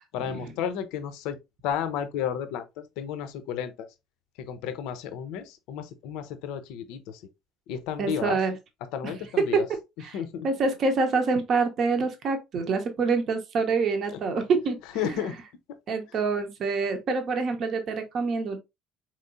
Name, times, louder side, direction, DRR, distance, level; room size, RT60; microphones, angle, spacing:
voice 1, 0.1-1.4 1.6-3.9 4.4-7.2 7.7-8.4 8.9-9.7 10.1-10.5 14.9-15.4 15.7-15.8, left 8 dB, 60° left, 0.5 m, -32 dB
voice 2, 8.0-8.5 9.0-9.1 9.5-9.6 10.0-10.2 10.4-14.8 15.9-18.6, right 4 dB, 45° right, 0.7 m, -26 dB
4.3 x 3.0 x 2.5 m
figure-of-eight pair, 60°, 0 cm